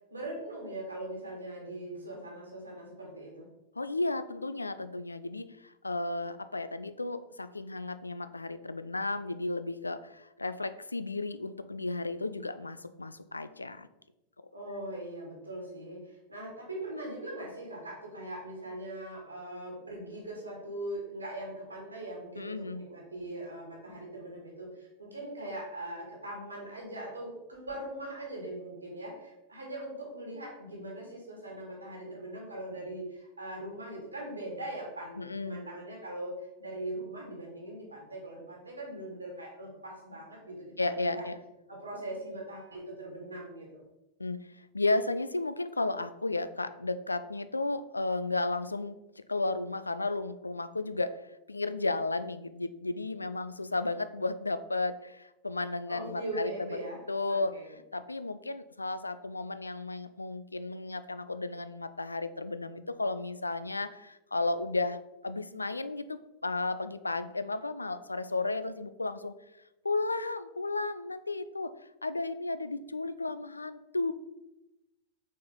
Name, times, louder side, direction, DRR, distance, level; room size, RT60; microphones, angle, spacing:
voice 1, 0.1-3.5 14.5-41.2 41.7-43.8 55.9-57.0 57.3-57.7, right 1 dB, 80° right, -1 dB, 2.0 m, -41 dB
voice 2, 3.8-13.9 22.4-22.8 35.2-35.6 40.8-41.4 44.2-51.2 51.5-56.8 57.1-57.6 57.9-65.0 65.2-69.3 69.8-71.7 72.0-74.1, left 2 dB, 80° left, 13 dB, 0.3 m, -33 dB
6.2 x 4.3 x 3.9 m, 0.94 s
figure-of-eight pair, 90°, 0 cm